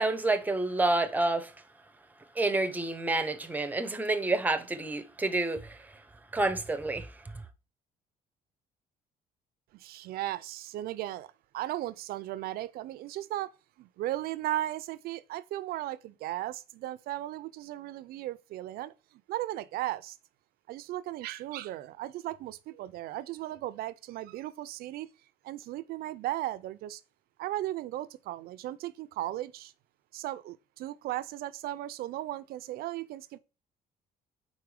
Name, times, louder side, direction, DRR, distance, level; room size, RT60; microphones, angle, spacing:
voice 1, 0.0-1.5 2.4-6.0 6.3-7.2, right 2 dB, 10° right, 0.7 m, -29 dB
voice 2, 9.7-13.5 13.8-20.2 20.7-25.1 25.4-27.0 27.4-29.7 30.1-33.4, right 14 dB, 80° right, 0.5 m, -36 dB
4.8 x 4.3 x 4.7 m
cardioid pair, 135°, 16 cm